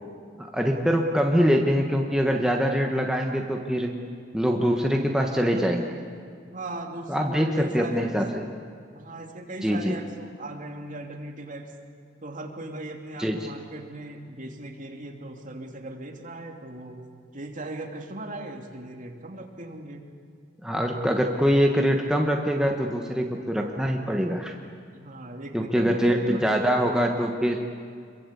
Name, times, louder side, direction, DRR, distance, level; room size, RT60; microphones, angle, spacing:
voice 1, 0.4-3.9 4.3-5.8 7.1-8.5 9.6-9.9 13.2-13.4 20.6-24.5 25.5-27.6, equal, 5° right, 1 dB, 1.4 m, -24 dB
voice 2, 6.5-8.1 8.9-11.7 12.2-17.0 17.3-20.1 24.9-26.4, right 2 dB, 45° right, 2 dB, 2.8 m, -38 dB
26.0 x 22.5 x 8.4 m, 2.2 s
head